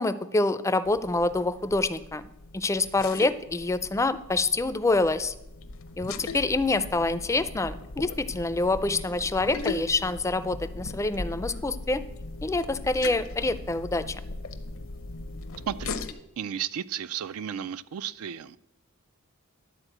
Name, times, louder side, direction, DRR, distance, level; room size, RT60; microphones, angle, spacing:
voice 1, 0.0-2.2 2.5-5.3 6.0-12.0 12.4-14.2, left 2 dB, 15° left, 0.4 m, -26 dB
sound 1, 0.9-16.1, left 3 dB, 65° left, 0.7 m, -39 dB
voice 2, 15.7-16.0 16.4-18.6, right 9 dB, 85° right, 0.4 m, -33 dB
11.5 x 4.4 x 7.8 m
head